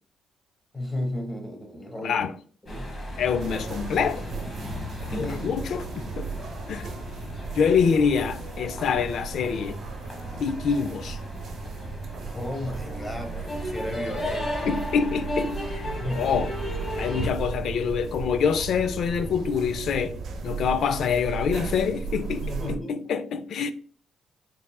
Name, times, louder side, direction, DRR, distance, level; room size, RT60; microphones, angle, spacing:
voice 1, 0.7-2.3 2.6-2.9 5.1-5.5 12.2-14.7 15.9-16.5 22.4-23.1, left 1 dB, 20° left, 1.0 m, -34 dB
voice 2, 2.0-2.3 3.2-4.3 5.1-6.3 6.7-6.9 7.5-9.8 10.4-11.2 14.7-16.5 17.0-20.2 20.4-23.7, left 6 dB, 65° left, 0.3 m, -26 dB
sound 1, 2.7-17.3, left 1 dB, 35° left, 1.3 m, -36 dB
sound 2, 3.1-21.8, equal, 5° right, 1.1 m, -43 dB
sound 3, 3.4-22.8, right 5 dB, 65° right, 0.8 m, -36 dB
4.2 x 3.5 x 2.3 m
cardioid pair, 90°, 0 cm